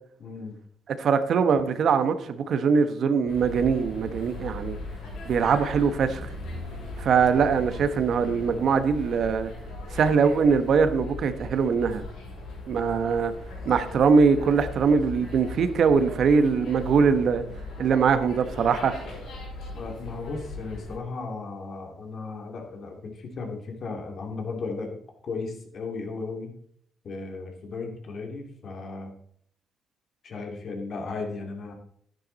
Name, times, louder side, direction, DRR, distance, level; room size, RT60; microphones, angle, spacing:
voice 1, 0.2-0.6 19.7-25.0 25.2-26.5 27.0-29.1 30.2-31.7, left 4 dB, 55° left, 2.7 m, -35 dB
voice 2, 1.0-4.8 5.2-6.3 7.0-9.5 9.9-12.0 12.7-13.3 13.6-17.4 17.8-19.0, right 5 dB, 65° right, 1.0 m, -22 dB
sound 1, 3.3-20.9, left 2 dB, 90° left, 5.9 m, -38 dB
10.5 x 10.5 x 4.1 m
cardioid pair, 90°, 0 cm